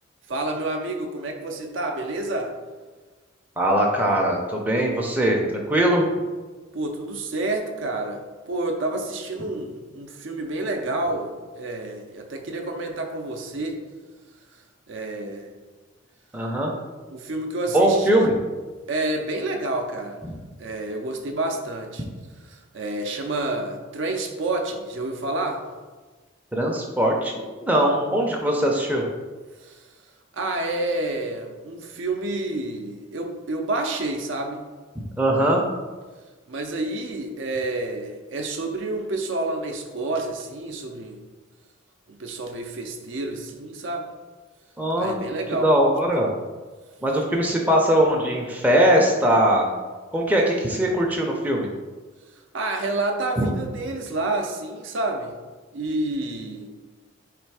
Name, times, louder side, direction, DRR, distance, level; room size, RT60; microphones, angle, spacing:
voice 1, 0.3-2.5 6.7-13.8 14.9-15.5 17.1-18.3 18.9-20.2 20.6-22.0 22.5-25.6 29.6-29.8 30.3-34.6 36.5-41.2 42.1-44.1 45.0-45.7 52.5-55.3 55.7-56.7, right 2 dB, 60° right, 4 dB, 0.5 m, -29 dB
voice 2, 3.6-6.0 16.3-16.7 17.7-18.3 26.5-29.0 35.2-35.6 44.8-45.2 45.6-46.3 47.0-49.7 50.1-51.7 53.4-53.5, right 1 dB, 10° right, -1 dB, 0.5 m, -21 dB
3.4 x 3.3 x 4.7 m, 1.3 s
head